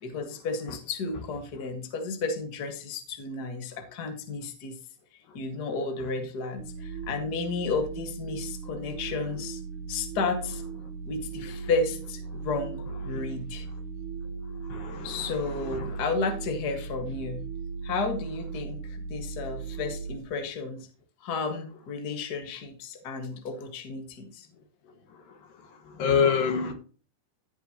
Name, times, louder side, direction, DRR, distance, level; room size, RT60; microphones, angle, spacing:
voice 1, 0.0-4.8 5.3-9.6 9.9-10.6 11.0-13.7 15.0-17.4 17.8-18.8 19.1-20.9 21.2-24.5, left 4 dB, 40° left, 1.6 m, -32 dB
sound 1, 6.6-20.2, right 5 dB, 70° right, 2.7 m, -38 dB
voice 2, 14.7-15.3 15.7-16.0 26.0-26.7, left 6 dB, 80° left, 3.3 m, -26 dB
15.0 x 7.0 x 2.9 m
omnidirectional pair, 3.9 m